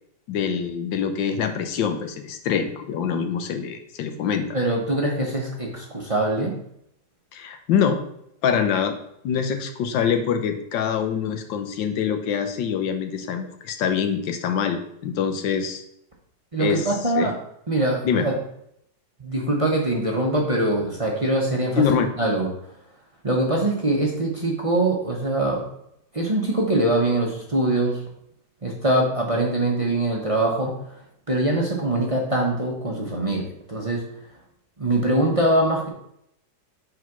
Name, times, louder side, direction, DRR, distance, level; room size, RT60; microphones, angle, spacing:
voice 1, 0.3-4.5 7.3-8.0 8.4-9.0 9.2-15.8 16.6-16.9 17.1-17.3 18.0-18.2 21.8-22.1, left 7 dB, 80° left, 7 dB, 1.5 m, -24 dB
voice 2, 4.5-6.5 16.5-17.3 17.7-18.4 19.2-21.8 22.2-22.5 23.2-25.6 26.1-28.0 28.6-31.0 31.3-34.0 34.8-35.9, right 1 dB, 25° right, -1 dB, 0.7 m, -23 dB
5.1 x 3.9 x 5.9 m, 0.75 s
omnidirectional pair, 2.0 m